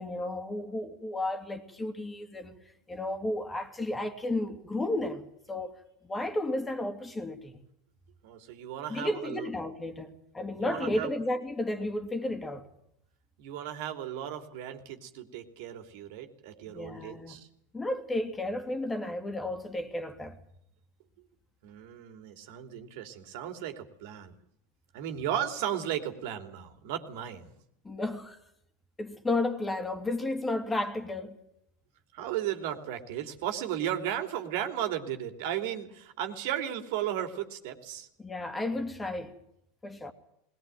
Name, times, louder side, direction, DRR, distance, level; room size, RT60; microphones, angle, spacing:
voice 1, 0.0-2.6 2.9-7.6 8.9-12.7 16.7-17.4 17.7-20.4 27.8-28.4 29.0-31.4 38.2-39.3 39.8-40.1, left 1 dB, 15° left, 2.7 m, -33 dB
voice 2, 8.2-9.5 10.5-11.1 13.4-17.5 21.6-24.3 24.9-27.5 32.1-38.1, right 10 dB, 65° right, 3.1 m, -35 dB
20.5 x 19.0 x 9.3 m
supercardioid pair, 115°, 0 cm